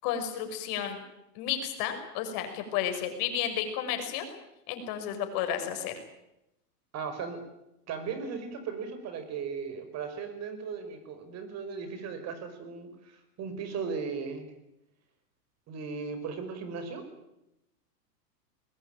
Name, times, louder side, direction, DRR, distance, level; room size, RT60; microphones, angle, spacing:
voice 1, 0.0-1.0 1.4-4.3 4.7-5.9, left 9 dB, 45° left, 6 dB, 5.6 m, -32 dB
voice 2, 6.9-7.4 7.9-14.5 15.7-17.0, right 5 dB, 30° right, 9 dB, 5.3 m, -37 dB
22.0 x 20.5 x 9.1 m, 0.87 s
hypercardioid pair, 135°, 48 cm